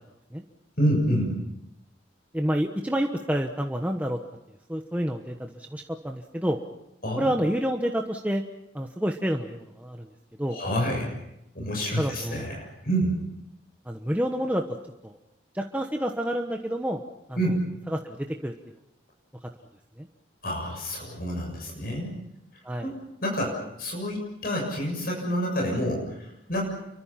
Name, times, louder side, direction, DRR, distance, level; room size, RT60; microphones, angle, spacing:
voice 1, 0.8-1.3 7.0-7.3 10.5-11.1 11.5-13.2 17.4-17.6 20.4-22.1 22.8-23.0 23.2-26.6, equal, 50° left, 0 dB, 7.2 m, -28 dB
voice 2, 2.3-4.2 4.7-6.6 7.2-8.4 8.7-10.1 10.4-10.6 12.0-12.5 13.9-14.7 15.0-15.1 15.5-17.0 17.9-18.5 20.0-20.1 22.6-22.9, equal, 10° right, 3 dB, 1.1 m, -28 dB
29.5 x 24.0 x 5.9 m, 0.86 s
head